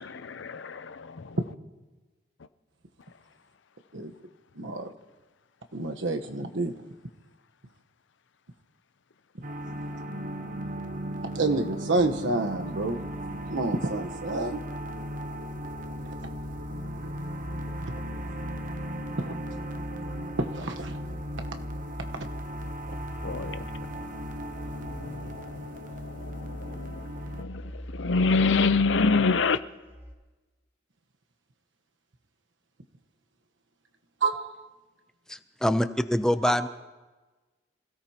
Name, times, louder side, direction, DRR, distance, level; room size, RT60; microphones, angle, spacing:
voice 1, 0.0-1.4 23.2-24.3 24.6-29.6, left 4 dB, 75° left, 0.6 m, -28 dB
voice 2, 4.5-4.9 5.7-6.8 11.3-13.0 13.5-14.6 16.0-16.3 17.0-17.1 19.2-19.3 20.4-21.0 22.9-23.0 34.2-34.5 36.4-36.5, right 2 dB, 90° right, 1.2 m, -29 dB
sound 1, 9.4-27.4, equal, 45° right, 0.9 m, -37 dB
sound 2, 12.0-30.1, equal, 15° right, 2.9 m, -42 dB
voice 3, 35.3-36.7, equal, 5° left, 0.6 m, -25 dB
27.0 x 17.0 x 2.9 m
head